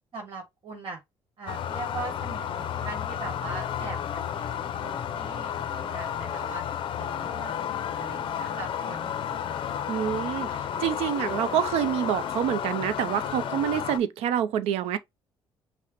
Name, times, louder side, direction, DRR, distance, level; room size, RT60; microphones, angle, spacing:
voice 1, 0.1-1.0 1.4-4.0 4.3-4.4 4.8-6.6 7.0-9.2, right 4 dB, 55° right, 1.3 m, -40 dB
sound 1, 1.5-14.0, left 9 dB, 55° left, 0.5 m, -32 dB
voice 2, 9.9-10.5 10.8-15.0, right 10 dB, 80° right, 0.4 m, -27 dB
5.6 x 2.0 x 2.9 m
supercardioid pair, 75°, 10 cm